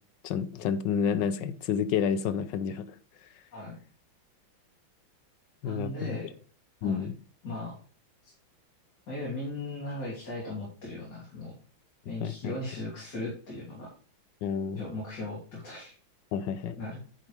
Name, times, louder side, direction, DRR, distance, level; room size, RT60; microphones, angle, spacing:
voice 1, 0.2-3.0 5.6-6.2 6.8-7.2 12.2-12.6 14.4-14.8 16.3-16.8, left 7 dB, 70° left, 13 dB, 1.2 m, -29 dB
voice 2, 5.6-6.3 6.8-7.1 7.4-7.8 8.2-8.3 9.1-11.5 12.1-13.9 14.8-16.0 16.8-17.0, left 2 dB, 50° left, -5 dB, 3.5 m, -37 dB
9.9 x 7.2 x 3.2 m, 0.39 s
omnidirectional pair, 2.3 m